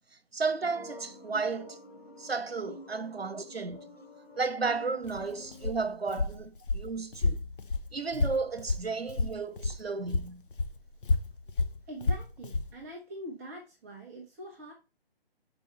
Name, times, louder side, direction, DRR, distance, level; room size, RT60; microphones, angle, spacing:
voice 1, 0.3-1.9 2.2-3.8 4.4-7.4 7.9-10.4, right 4 dB, 80° right, 0.9 m, -33 dB
sound 1, 0.6-5.7, left 1 dB, 85° left, 3.4 m, -49 dB
Walk footsteps, 5.0-9.8 10.1-12.7, left 3 dB, 60° left, 1.0 m, -31 dB
voice 2, 11.9-14.7, equal, 10° right, 0.6 m, -44 dB
6.2 x 4.5 x 4.4 m
figure-of-eight pair, 135°, 30 cm